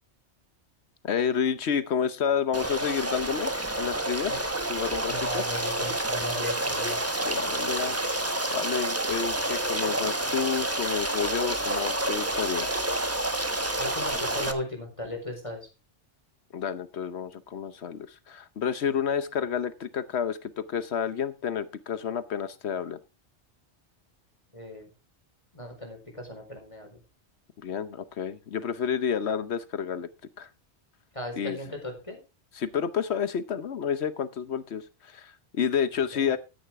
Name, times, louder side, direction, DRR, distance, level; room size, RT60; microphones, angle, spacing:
voice 1, 1.0-4.4 4.7-5.4 7.2-8.0 8.5-12.7 16.5-23.0 27.6-30.1 30.4-30.5 31.3-31.6 32.5-36.4, left 7 dB, 75° left, 13 dB, 1.1 m, -30 dB
Stream, 2.5-14.5, right 1 dB, 15° right, 1.2 m, -29 dB
voice 2, 5.1-7.0 13.7-15.7 24.5-24.9 25.5-27.0 31.1-32.2 36.1-36.3, left 1 dB, 30° left, 3 dB, 4.6 m, -36 dB
13.5 x 10.0 x 3.6 m, 0.28 s
omnidirectional pair, 1.1 m